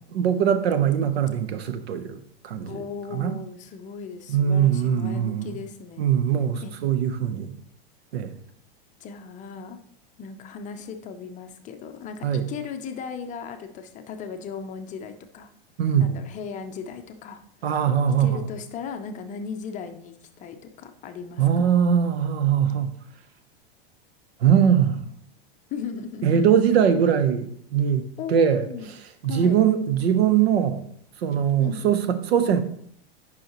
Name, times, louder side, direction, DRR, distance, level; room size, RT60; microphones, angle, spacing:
voice 1, 0.1-2.7 3.1-3.4 4.3-5.6 6.0-7.5 8.1-8.3 12.2-12.5 15.8-16.1 17.6-18.4 21.4-22.9 24.4-25.1 26.2-28.0 28.3-28.6 29.2-30.8 31.2-32.6, right 8 dB, 85° right, 0.8 m, -21 dB
voice 2, 2.6-6.1 6.6-6.7 9.0-9.8 10.2-15.5 16.0-17.4 18.2-21.5 25.7-26.4 28.2-28.9 29.3-29.6 31.6-31.8, left 6 dB, 25° left, 0.6 m, -37 dB
9.1 x 5.6 x 3.0 m
supercardioid pair, 140°, 30 cm